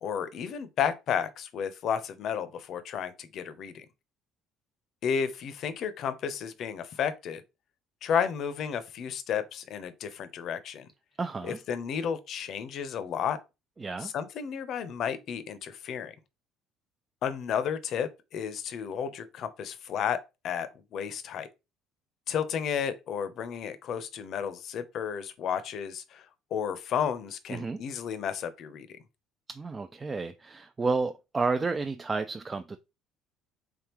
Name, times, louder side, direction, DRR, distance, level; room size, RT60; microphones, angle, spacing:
voice 1, 0.0-3.8 5.0-7.4 8.0-10.9 11.4-13.4 14.0-16.1 17.2-20.2 20.4-21.5 22.3-26.3 26.5-28.9, left 8 dB, 60° left, 0.6 m, -32 dB
voice 2, 11.2-11.6 13.8-14.1 27.5-27.8 29.5-32.8, right 4 dB, 25° right, 0.3 m, -31 dB
3.6 x 3.5 x 3.0 m
cardioid pair, 100°, 0 cm